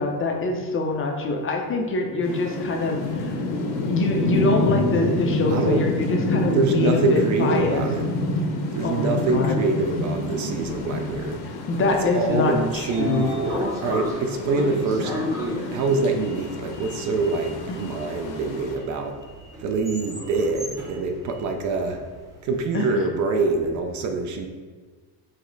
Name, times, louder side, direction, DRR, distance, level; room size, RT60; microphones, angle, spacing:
voice 1, 0.0-3.4 3.9-7.8 8.8-9.5 11.4-13.3 17.7-17.8 22.7-23.1, left 2 dB, 30° left, 2 dB, 0.5 m, -25 dB
sound 1, 2.2-18.8, left 2 dB, 60° left, 0.8 m, -28 dB
voice 2, 5.5-5.8 6.5-8.0 8.7-11.4 12.1-15.1 15.7-19.2 19.6-22.0 22.4-24.5, right 3 dB, 45° right, 4 dB, 0.5 m, -25 dB
Sliding door, 12.6-22.5, equal, 10° right, 0.8 m, -34 dB
4.9 x 2.1 x 3.8 m, 1.4 s
cardioid pair, 120°, 43 cm